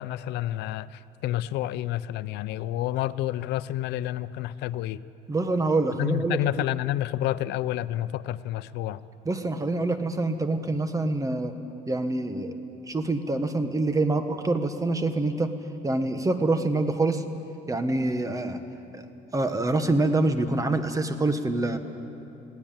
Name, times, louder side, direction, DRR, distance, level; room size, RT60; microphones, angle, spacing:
voice 1, 0.0-5.0 6.0-9.0, left 13 dB, 85° left, 15 dB, 0.6 m, -29 dB
voice 2, 5.3-6.4 9.2-11.5 11.9-12.5 12.8-15.5 15.8-17.2 17.7-18.6 18.9-19.1 19.3-21.8, right 2 dB, 20° right, 8 dB, 1.4 m, -26 dB
21.5 x 16.5 x 8.9 m, 2.7 s
cardioid pair, 110°, 17 cm